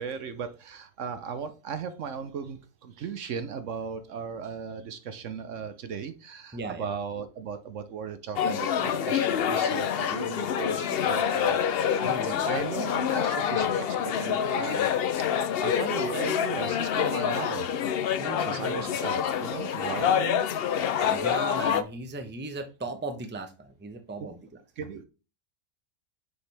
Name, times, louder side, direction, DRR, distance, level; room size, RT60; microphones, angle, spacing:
voice 1, 0.0-14.9 15.6-17.7 18.4-20.4 24.2-24.3 24.8-25.0, right 6 dB, 65° right, 10 dB, 1.0 m, -37 dB
voice 2, 6.5-6.9 12.0-12.4 18.2-18.9 19.8-19.9 21.1-24.4, right 2 dB, 10° right, 7 dB, 0.7 m, -37 dB
sound 1, 8.4-21.8, left 8 dB, 60° left, 0.6 m, -27 dB
6.6 x 5.1 x 3.3 m, 0.32 s
omnidirectional pair, 1.5 m